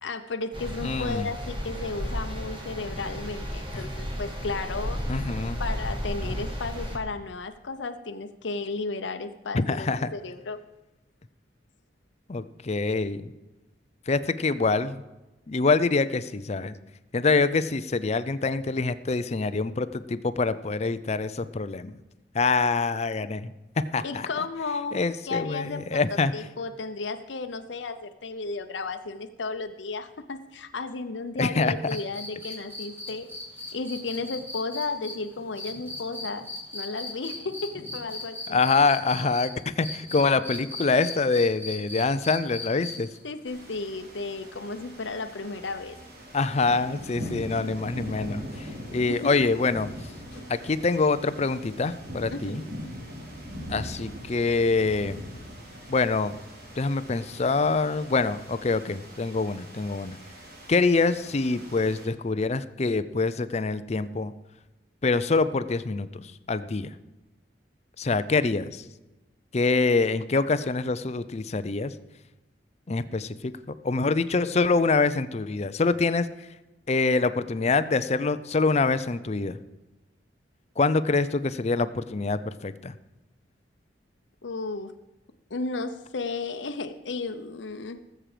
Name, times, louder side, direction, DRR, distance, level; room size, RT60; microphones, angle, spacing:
voice 1, 0.0-5.0 5.6-10.6 24.0-25.0 25.3-26.0 26.3-33.3 33.7-36.5 36.7-38.6 43.2-46.0 49.1-49.5 50.3-50.4 52.3-52.6 84.4-84.9 85.5-88.0, left 3 dB, 85° left, 7 dB, 0.7 m, -34 dB
sound 1, 0.5-7.0, equal, 30° right, 2.2 m, -33 dB
voice 2, 0.8-1.3 3.7-3.9 5.1-5.6 9.5-10.1 12.3-13.3 14.1-15.0 15.5-16.8 17.1-21.9 22.3-23.5 23.9-24.3 24.9-26.3 31.4-31.7 38.5-43.1 46.3-49.9 50.5-52.6 53.7-55.2 55.9-56.4 56.8-60.2 60.7-64.3 65.0-66.9 68.0-68.8 69.5-71.9 72.9-76.3 76.9-79.6 80.8-82.9, left 3 dB, 35° left, 14 dB, 0.5 m, -25 dB
sound 2, 31.9-39.5 39.8-43.2 44.8-44.9, left 2 dB, 10° right, 3.1 m, -37 dB
sound 3, 43.5-62.0, equal, 60° right, 2.9 m, -41 dB
18.5 x 7.5 x 5.0 m, 1.1 s
head